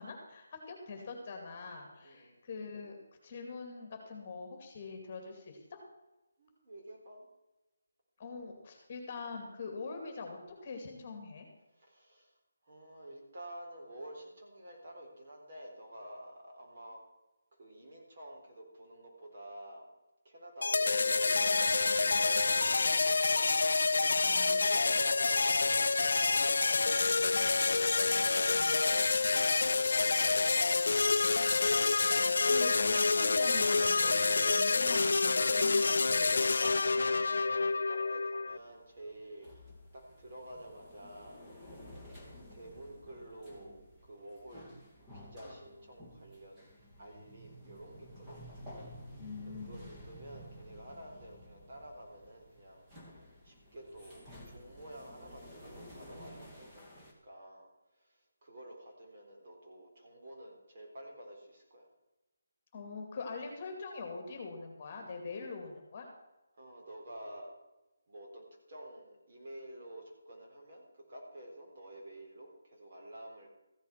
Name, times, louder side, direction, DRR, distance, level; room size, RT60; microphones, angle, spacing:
voice 1, 0.0-3.0 3.2-5.8 8.2-11.5 24.2-24.7 32.5-36.7 49.2-49.9 62.7-66.1, left 4 dB, 25° left, 3 dB, 2.4 m, -43 dB
voice 2, 2.0-2.4 6.4-7.3 11.7-12.4 12.6-17.0 17.5-19.9 20.2-23.4 24.2-31.4 37.5-39.5 39.9-41.4 42.5-44.6 45.1-48.4 49.5-52.9 53.2-57.7 57.9-61.9 66.6-67.5 68.1-73.5, right 1 dB, 40° right, -1 dB, 3.9 m, -50 dB
sound 1, 20.6-38.6, left 3 dB, 65° left, 0.5 m, -28 dB
sound 2, 33.5-36.5 36.8-36.9 37.3-37.4, right 2 dB, 75° right, 2.4 m, -53 dB
sound 3, 38.5-57.1, equal, 10° right, 2.3 m, -53 dB
14.5 x 8.2 x 5.9 m, 1.0 s
hypercardioid pair, 170°, 0 cm